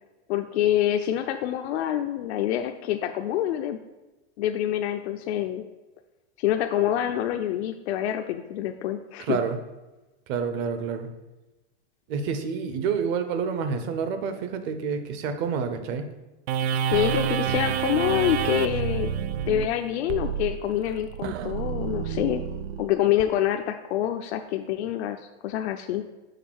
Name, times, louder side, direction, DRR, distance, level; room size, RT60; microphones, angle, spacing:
voice 1, 0.3-3.8 4.4-5.6 6.4-9.4 16.9-19.1 19.5-22.4 22.8-26.0, left 11 dB, 80° left, 6 dB, 0.5 m, -26 dB
voice 2, 9.2-9.6 10.3-11.1 12.1-16.1, right 6 dB, 35° right, 8 dB, 0.6 m, -28 dB
sound 1, 16.5-23.2, right 9 dB, 90° right, 0.5 m, -28 dB
6.6 x 3.6 x 6.2 m, 1.1 s
supercardioid pair, 155°, 32 cm